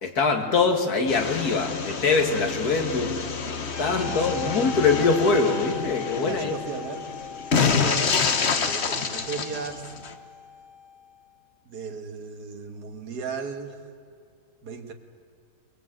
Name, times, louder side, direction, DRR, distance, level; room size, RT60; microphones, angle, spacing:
voice 1, 0.0-3.2 3.8-6.5, left 4 dB, 70° left, 4 dB, 2.6 m, -23 dB
sound 1, 1.1-10.1, left 5 dB, 45° left, 1.3 m, -28 dB
sound 2, 3.7-11.2, left 4 dB, 60° right, 4.4 m, -39 dB
voice 2, 3.8-4.8 6.2-7.1 7.5-8.2 8.6-9.9 11.7-13.9 14.6-14.9, right 5 dB, 80° right, 5 dB, 2.0 m, -36 dB
23.0 x 21.0 x 7.8 m, 2.3 s
omnidirectional pair, 1.7 m